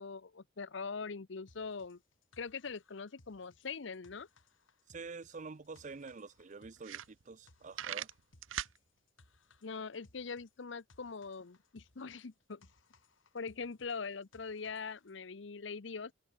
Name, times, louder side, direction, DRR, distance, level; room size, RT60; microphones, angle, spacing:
voice 1, 0.0-2.0 2.4-4.3 9.6-12.7 13.3-16.1, left 5 dB, 65° left, 0.7 m, -42 dB
sound 1, 1.5-15.2, left 2 dB, 85° left, 3.7 m, -67 dB
voice 2, 4.9-8.1, right 4 dB, 40° right, 0.6 m, -47 dB
sound 2, 5.4-5.5 5.8-5.9 6.4-6.5 6.8-7.5 7.7-8.8, right 10 dB, 85° right, 0.7 m, -40 dB
head